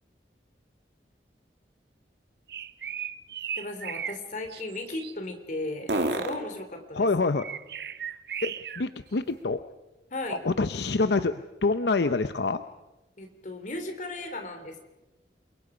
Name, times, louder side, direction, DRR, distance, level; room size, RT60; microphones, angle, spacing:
sound 1, 0.9-10.0 10.4-14.2, right 2 dB, 85° right, 2.3 m, -41 dB
sound 2, 2.5-4.2 4.5-5.1 7.3-8.8, right 8 dB, 65° right, 0.8 m, -36 dB
voice 1, 3.5-7.1 10.1-10.4 13.2-14.8, left 2 dB, 45° left, 6 dB, 3.2 m, -36 dB
voice 2, 6.9-7.5 8.4-9.6 10.3-12.6, left 3 dB, 75° left, 10 dB, 0.7 m, -26 dB
29.0 x 22.5 x 5.0 m, 1.0 s
head